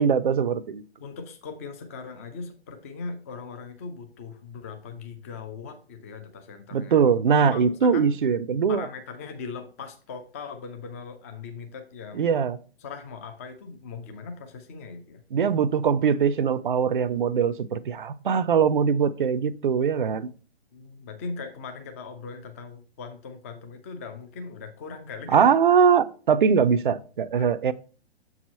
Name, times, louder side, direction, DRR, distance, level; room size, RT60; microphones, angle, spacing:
voice 1, 0.0-0.8 6.7-8.9 12.1-12.6 15.3-20.3 25.3-27.7, right 6 dB, 55° right, 0.5 m, -22 dB
voice 2, 1.0-7.0 7.4-8.1 8.7-12.3 12.8-15.2 20.7-25.5 27.4-27.5, left 4 dB, 15° left, 0.5 m, -39 dB
7.1 x 4.8 x 4.2 m
figure-of-eight pair, 125°, 32 cm